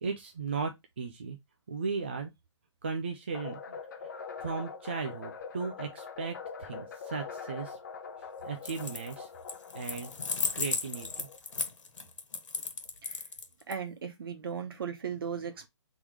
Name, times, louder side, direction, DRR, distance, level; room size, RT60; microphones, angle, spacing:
voice 1, 0.0-1.4 1.7-2.3 2.8-4.1 4.4-7.8 8.4-9.3 9.7-10.1 10.5-11.3, right 5 dB, 20° right, 0.3 m, -36 dB
sound 1, 3.3-11.6, left 5 dB, 40° left, 0.7 m, -43 dB
sound 2, 8.6-9.1 9.5-13.7, left 5 dB, 80° left, 1.4 m, -35 dB
voice 2, 13.7-15.7, right 7 dB, 50° right, 1.0 m, -37 dB
3.6 x 3.0 x 4.7 m
hypercardioid pair, 175°, 16 cm